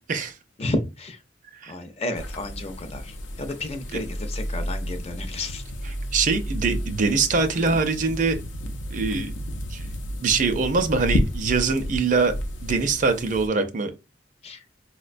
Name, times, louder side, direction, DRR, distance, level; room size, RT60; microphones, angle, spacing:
voice 1, 0.6-1.2 1.6-5.6 14.4-14.6, left 2 dB, 35° left, 0.4 m, -32 dB
sound 1, 2.2-13.5, equal, 85° left, 0.5 m, -31 dB
voice 2, 6.1-8.4 8.9-9.3 9.7-9.9 10.2-12.3 12.6-13.9, right 4 dB, 45° right, 0.4 m, -23 dB
4.4 x 2.1 x 2.5 m
head